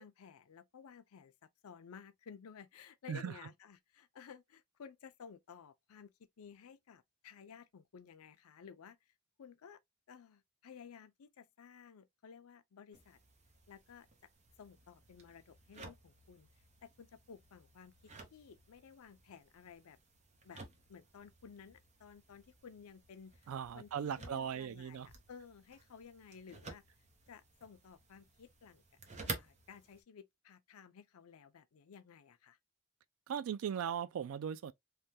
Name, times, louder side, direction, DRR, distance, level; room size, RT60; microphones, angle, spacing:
voice 1, 0.0-1.3 1.6-9.1 9.4-9.8 10.1-13.2 13.7-14.1 14.6-16.5 16.8-17.9 18.3-20.0 20.4-20.6 20.9-23.5 23.7-26.8 27.3-28.8 29.2-32.6, left 6 dB, 85° left, 0.5 m, -55 dB
sound 1, 12.9-30.0, right 3 dB, 30° right, 0.7 m, -52 dB
voice 2, 23.5-25.1 33.3-34.7, right 8 dB, 70° right, 0.3 m, -38 dB
3.3 x 2.2 x 2.6 m
head